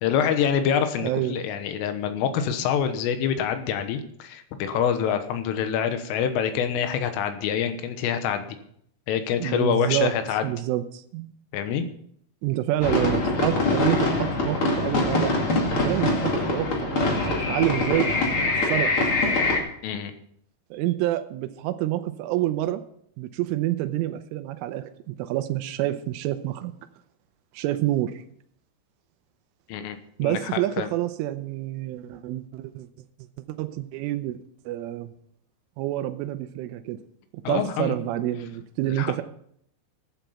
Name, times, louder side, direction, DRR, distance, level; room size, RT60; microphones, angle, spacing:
voice 1, 0.0-8.5 9.1-10.5 11.5-11.9 19.8-20.1 29.7-30.5 30.8-30.9 37.5-38.0 39.0-39.1, left 8 dB, 85° left, 8 dB, 3.8 m, -26 dB
voice 2, 1.0-1.5 9.4-10.2 10.4-11.3 12.4-15.4 15.7-18.1 18.7-19.1 20.7-22.8 23.2-26.7 27.5-28.2 30.2-32.9 33.6-34.4 34.7-35.1 35.8-37.0 37.3-39.2, right 14 dB, 85° right, 10 dB, 3.2 m, -28 dB
sound 1, 12.8-19.6, left 2 dB, 40° left, 2.0 m, -24 dB
14.0 x 9.0 x 5.6 m, 0.68 s
omnidirectional pair, 5.7 m